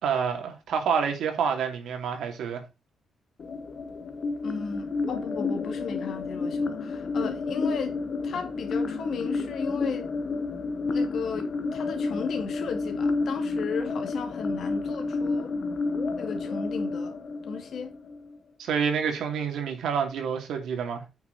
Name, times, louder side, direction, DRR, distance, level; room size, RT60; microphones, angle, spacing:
voice 1, 0.0-2.6 18.6-21.0, right 6 dB, 85° right, 2.7 m, -28 dB
sound 1, 3.4-18.4, left 3 dB, 40° left, 1.2 m, -30 dB
voice 2, 4.4-10.1 10.9-15.5 16.2-17.2 17.5-17.9, left 5 dB, 60° left, 2.2 m, -35 dB
8.8 x 6.2 x 4.1 m
wide cardioid pair, 170°, 0 cm